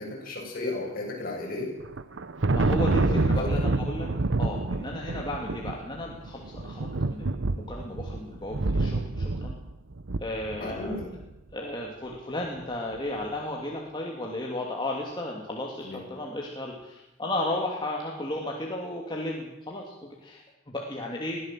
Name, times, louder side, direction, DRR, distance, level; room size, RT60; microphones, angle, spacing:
voice 1, 0.0-1.7 2.9-3.5 10.6-11.1 15.8-16.0, left 2 dB, 50° left, -1 dB, 7.4 m, -34 dB
Thunder, 1.8-11.2, right 2 dB, 70° right, 0.9 m, -28 dB
voice 2, 2.4-4.1 4.4-9.5 10.2-11.0 11.5-21.4, left 1 dB, 25° left, -2 dB, 2.9 m, -34 dB
22.5 x 16.0 x 7.7 m, 0.94 s
head